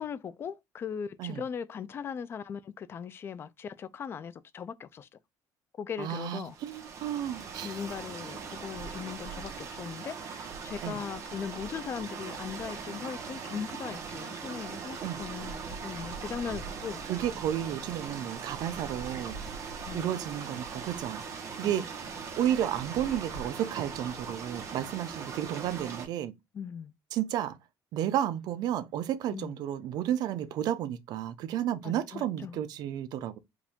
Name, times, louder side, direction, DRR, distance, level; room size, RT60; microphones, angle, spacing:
voice 1, 0.0-5.1 5.8-6.6 7.6-17.0 19.9-20.2 21.6-21.8 26.5-26.9 29.3-29.6 31.8-32.6, left 7 dB, 30° left, 0.4 m, -39 dB
voice 2, 6.0-7.8 10.8-11.0 15.0-15.2 17.0-19.4 19.9-21.2 21.5-26.3 27.1-27.6 27.9-33.4, right 11 dB, 60° right, 0.6 m, -32 dB
sound 1, 6.5-26.1, right 5 dB, 40° right, 1.3 m, -40 dB
4.8 x 2.5 x 3.6 m
cardioid pair, 160°, 8 cm